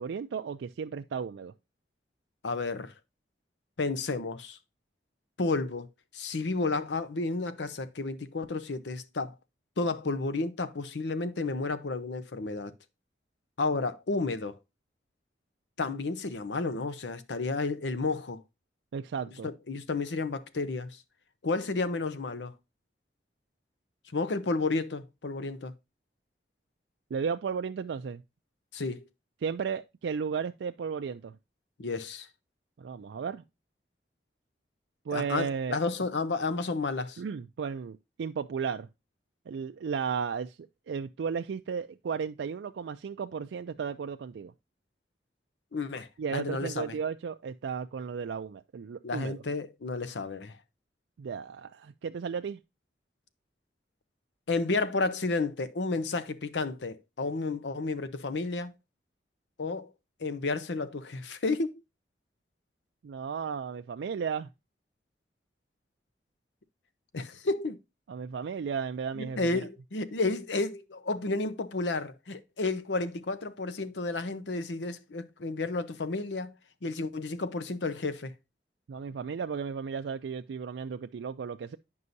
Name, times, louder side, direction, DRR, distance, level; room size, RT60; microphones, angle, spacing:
voice 1, 0.0-1.5 18.9-19.5 27.1-28.2 29.4-31.4 32.8-33.4 35.1-35.8 37.2-38.9 39.5-44.5 46.2-49.4 51.2-52.6 63.0-64.5 68.1-69.6 78.9-81.8, right 6 dB, 90° right, 0.4 m, -34 dB
voice 2, 2.4-2.9 3.8-4.6 5.4-5.9 6.1-9.3 9.8-12.7 13.6-14.6 15.8-18.4 19.4-21.0 21.4-22.5 24.1-25.7 28.7-29.0 31.8-32.3 35.1-37.2 45.7-47.0 49.0-50.6 54.5-58.7 59.6-59.9 60.2-61.8 67.1-67.8 69.2-76.5 76.8-78.3, left 3 dB, 85° left, 0.7 m, -31 dB
9.5 x 5.4 x 2.6 m
head